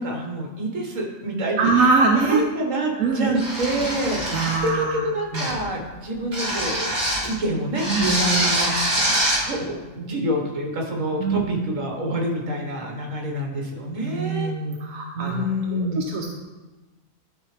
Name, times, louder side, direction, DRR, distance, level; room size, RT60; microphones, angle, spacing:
voice 1, 0.0-1.7 2.1-6.9 7.3-8.9 9.4-14.5 15.1-16.0, right 1 dB, 70° right, 0 dB, 1.7 m, -27 dB
voice 2, 1.6-2.4 3.0-3.4 4.3-5.5 7.9-8.1 11.2-11.6 14.0-16.3, right 4 dB, 85° right, 0 dB, 1.2 m, -23 dB
sound 1, 3.3-4.7 5.3-5.7 6.3-7.3 7.7-9.5, right 1 dB, 30° right, 1.6 m, -24 dB
11.5 x 4.5 x 3.3 m, 1.2 s
omnidirectional pair, 1.4 m